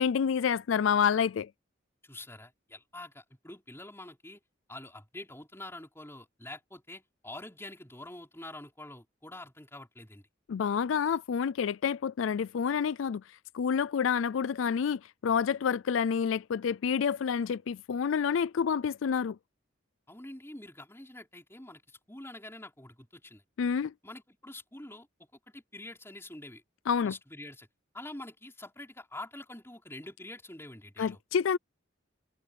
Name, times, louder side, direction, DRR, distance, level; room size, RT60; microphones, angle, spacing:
voice 1, 0.0-1.5 10.5-13.2 13.5-19.4 23.6-23.9 26.9-27.1 31.0-31.6, left 7 dB, 80° left, 0.4 m, -28 dB
voice 2, 2.0-4.4 4.7-10.3 20.1-23.4 24.0-26.6 27.0-27.7 27.9-31.2, left 1 dB, 15° left, 4.7 m, -46 dB
head